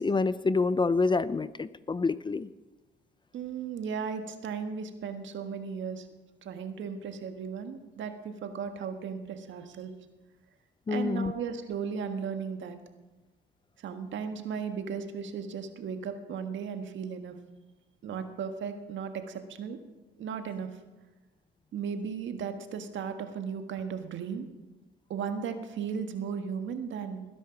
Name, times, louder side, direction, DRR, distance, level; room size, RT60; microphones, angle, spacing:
voice 1, 0.0-2.5 10.9-11.3, left 4 dB, 25° left, 16 dB, 0.5 m, -27 dB
voice 2, 3.3-6.1 6.4-9.9 10.9-12.8 13.8-17.3 18.0-19.8 20.2-20.7 21.7-24.5 25.1-27.3, right 6 dB, 70° right, 7 dB, 1.7 m, -36 dB
19.5 x 10.5 x 5.9 m, 1.2 s
cardioid pair, 90°, 20 cm